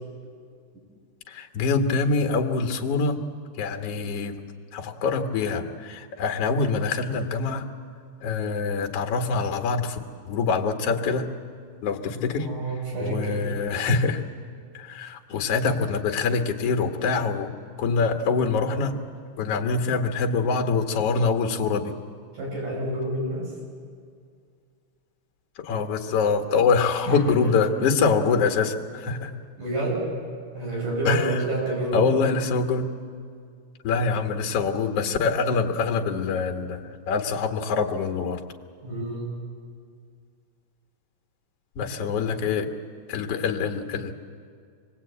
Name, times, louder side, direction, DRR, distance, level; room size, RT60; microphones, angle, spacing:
voice 1, 1.3-3.2 3.6-4.4 4.7-7.6 8.2-10.0 10.3-11.3 11.8-12.5 13.0-14.2 14.7-17.5 17.8-18.9 19.4-21.9 25.6-29.3 31.1-31.4 31.9-32.9 33.8-38.4 41.8-42.7 43.1-44.1, left 4 dB, 55° left, 3 dB, 2.3 m, -25 dB
voice 2, 12.1-13.5 22.3-23.5 27.1-27.7 29.6-30.1 30.5-32.1 38.8-39.3 42.0-42.1, right 2 dB, 80° right, -3 dB, 9.0 m, -29 dB
26.5 x 20.5 x 8.7 m, 2.2 s
omnidirectional pair, 3.7 m